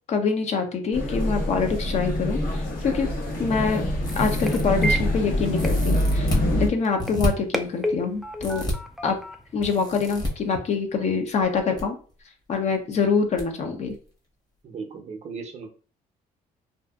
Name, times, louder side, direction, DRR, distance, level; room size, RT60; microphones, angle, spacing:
voice 1, 0.1-3.1 3.4-3.8 4.2-8.7 9.0-9.2 9.5-11.9 12.5-13.9, left 5 dB, 45° left, 4 dB, 0.6 m, -25 dB
sound 1, 0.9-6.7, left 1 dB, 70° left, 1.1 m, -25 dB
sound 2, 2.7-10.5, right 1 dB, ahead, 0.3 m, -34 dB
sound 3, 4.0-5.0 5.5-6.4 7.0-7.3 8.4-8.7 9.6-10.3 11.4-11.8 12.1-12.2 13.4-13.5 13.9-14.0, equal, 25° left, 0.9 m, -29 dB
voice 2, 14.6-15.7, right 5 dB, 45° right, 5 dB, 0.6 m, -37 dB
2.6 x 2.4 x 2.3 m, 0.39 s
cardioid pair, 95°, 15 cm